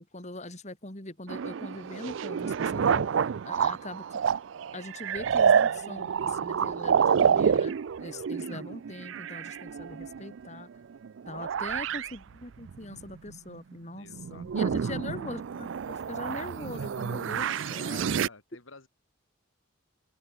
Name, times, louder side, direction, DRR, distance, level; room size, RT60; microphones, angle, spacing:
voice 1, 0.0-3.1 3.5-4.0 4.7-10.7 11.3-18.3, left 2 dB, 35° left, 3.8 m, -42 dB
sound 1, 1.3-10.6 11.0-12.1 12.7-13.7 14.1-18.3, right 7 dB, 65° right, 0.4 m, -28 dB
voice 2, 8.1-8.5 11.4-12.0 14.0-15.2 16.8-16.9 17.9-18.9, left 3 dB, 75° left, 2.7 m, -53 dB
open air
head